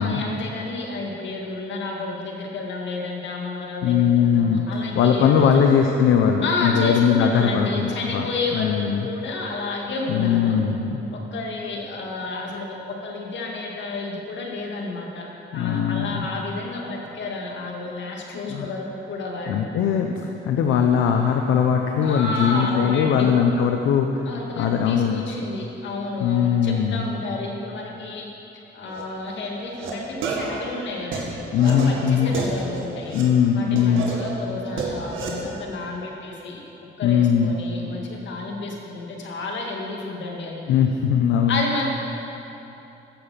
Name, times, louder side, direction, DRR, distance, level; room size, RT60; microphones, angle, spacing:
voice 1, 0.0-5.7 6.4-10.6 11.1-15.3 15.5-19.7 22.0-23.3 24.3-28.3 28.7-33.2 33.5-36.6 37.0-40.6 41.5-41.9, left 3 dB, 65° left, 0 dB, 2.1 m, -31 dB
voice 2, 3.8-4.6 4.9-8.3 8.5-9.1 10.1-11.0 15.5-16.3 18.4-18.7 19.5-24.3 24.6-25.2 26.2-27.1 31.5-32.3 33.1-34.1 37.0-37.5 40.7-41.6, left 7 dB, 85° left, 3 dB, 0.7 m, -20 dB
sound 1, 28.9-29.0 29.5-29.9 30.2-33.3 33.8-35.3, right 4 dB, 85° right, 1.8 m, -31 dB
14.5 x 7.1 x 5.7 m, 3.0 s
cardioid pair, 90°, 20 cm